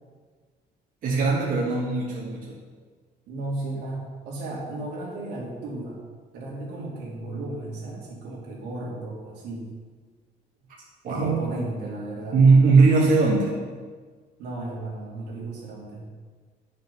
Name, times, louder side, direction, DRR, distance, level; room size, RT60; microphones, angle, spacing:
voice 1, 1.0-2.6 11.0-11.3 12.3-13.5, right 4 dB, 55° right, -4 dB, 1.7 m, -19 dB
voice 2, 3.3-6.0 6.3-9.7 11.0-12.4 14.4-16.1, right 2 dB, 85° right, -4 dB, 2.8 m, -34 dB
9.0 x 5.7 x 5.4 m, 1.5 s
cardioid pair, 110°, 17 cm